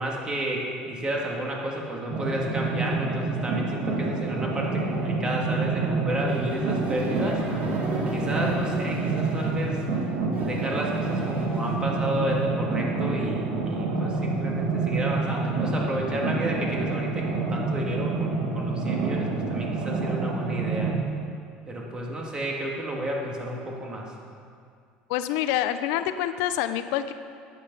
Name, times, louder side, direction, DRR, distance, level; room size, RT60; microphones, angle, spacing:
voice 1, 0.0-7.8 8.1-9.8 10.4-20.9 21.7-24.1, right 1 dB, 25° right, -2 dB, 2.2 m, -31 dB
sound 1, 2.1-20.9, right 3 dB, 65° right, 1.7 m, -28 dB
sound 2, 6.3-11.8, right 2 dB, 50° right, 2.4 m, -35 dB
voice 2, 25.1-27.1, left 11 dB, 80° left, 11 dB, 0.6 m, -26 dB
10.0 x 8.6 x 5.4 m, 2.3 s
supercardioid pair, 110°, 4 cm